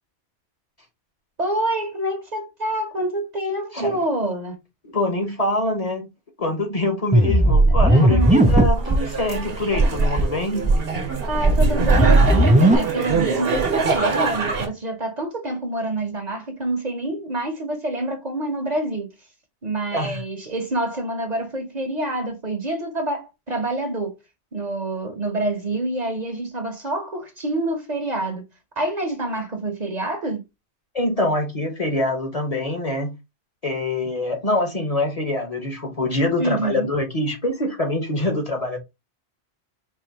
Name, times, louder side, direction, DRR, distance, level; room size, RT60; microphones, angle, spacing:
voice 1, 1.4-4.6 7.9-8.4 11.2-19.1 19.6-24.1 24.5-28.4 28.8-30.4 36.4-36.9, right 1 dB, 40° right, 1.0 m, -27 dB
voice 2, 4.8-6.1 6.4-10.7 19.9-20.2 30.9-33.1 33.6-38.8, left 1 dB, 35° left, 1.1 m, -24 dB
sound 1, 7.1-9.0 9.3-9.4 9.7-10.2 10.6-12.7, right 1 dB, 15° right, 0.3 m, -16 dB
sound 2, 8.2-14.7, right 5 dB, 60° right, 1.2 m, -25 dB
4.6 x 2.8 x 2.8 m
omnidirectional pair, 1.1 m